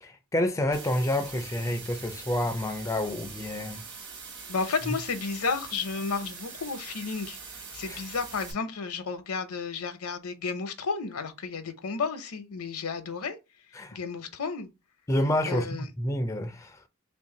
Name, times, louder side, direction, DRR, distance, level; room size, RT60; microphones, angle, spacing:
voice 1, 0.0-3.8 4.9-5.0 7.9-8.0 13.7-14.0 15.1-16.8, left 1 dB, 15° left, 0.3 m, -29 dB
sound 1, 0.7-8.5, right 5 dB, 55° right, 1.0 m, -43 dB
voice 2, 4.5-7.4 7.7-13.4 13.9-14.7 15.5-15.8, left 4 dB, 75° left, 0.7 m, -32 dB
3.4 x 2.6 x 3.7 m
head